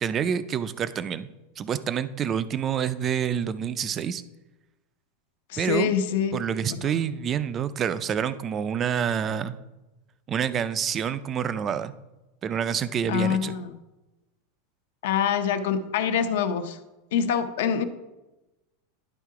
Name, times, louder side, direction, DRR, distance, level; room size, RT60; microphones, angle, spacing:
voice 1, 0.0-1.3 1.6-4.2 5.6-5.9 6.3-9.6 10.3-11.9 12.4-13.5, right 8 dB, 20° right, 14 dB, 0.3 m, -27 dB
voice 2, 5.5-6.4 6.7-6.8 13.1-13.7 15.0-16.8 17.1-17.8, left 7 dB, 65° left, 9 dB, 0.6 m, -25 dB
11.0 x 3.7 x 4.7 m, 1.0 s
supercardioid pair, 170°, 0 cm